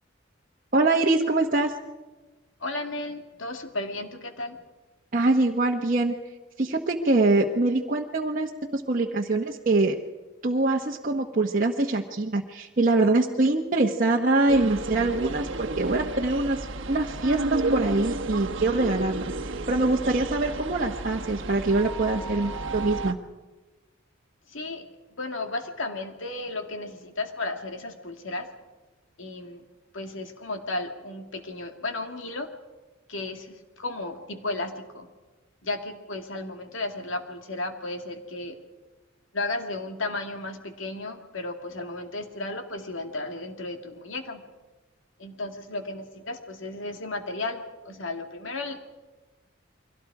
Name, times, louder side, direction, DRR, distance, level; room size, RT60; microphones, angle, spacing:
voice 1, 0.7-1.7 5.1-6.1 6.6-10.0 10.4-23.2, right 2 dB, 45° right, -1 dB, 1.2 m, -24 dB
voice 2, 2.6-4.6 24.5-24.9 25.2-28.5 29.2-29.6 29.9-32.5 33.1-35.1 35.6-38.6 39.3-44.4 45.2-48.9, left 2 dB, 70° left, 5 dB, 2.4 m, -34 dB
sound 1, 14.5-23.1, right 2 dB, 70° right, 1.2 m, -32 dB
30.0 x 23.0 x 4.9 m, 1.2 s
head